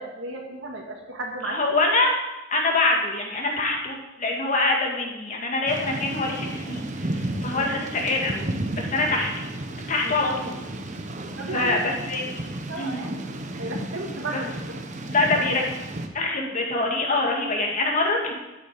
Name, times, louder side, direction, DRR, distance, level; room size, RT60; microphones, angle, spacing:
voice 1, 0.0-1.6 7.5-7.7 11.4-11.9 12.7-13.2 13.6-14.5 15.1-15.5, right 2 dB, 70° right, 0 dB, 1.9 m, -34 dB
voice 2, 1.4-2.1 2.5-6.9 7.1-8.5 8.8-9.3 9.9-10.6 11.5-12.3 12.8-13.0 14.3-14.4 15.1-15.6 16.1-18.3, left 2 dB, 40° left, 0 dB, 2.2 m, -24 dB
Thunder / Rain, 5.7-16.1, right 1 dB, 40° right, 1.0 m, -33 dB
12.0 x 8.5 x 5.1 m, 1.0 s
head